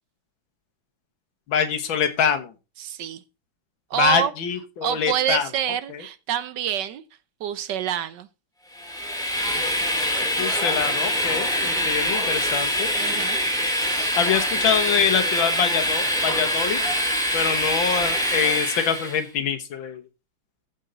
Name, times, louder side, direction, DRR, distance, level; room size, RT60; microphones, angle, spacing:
voice 1, 1.5-2.5 4.0-5.5 5.9-6.0 10.4-12.9 14.2-16.8 17.3-20.0, left 7 dB, 80° left, 2.0 m, -24 dB
voice 2, 2.8-3.2 3.9-4.3 4.8-7.0 7.4-8.3 11.6-12.0 12.9-13.4, right 10 dB, 70° right, 1.3 m, -27 dB
Train, 8.8-19.2, equal, ahead, 1.9 m, -24 dB
14.5 x 5.4 x 3.9 m
omnidirectional pair, 2.1 m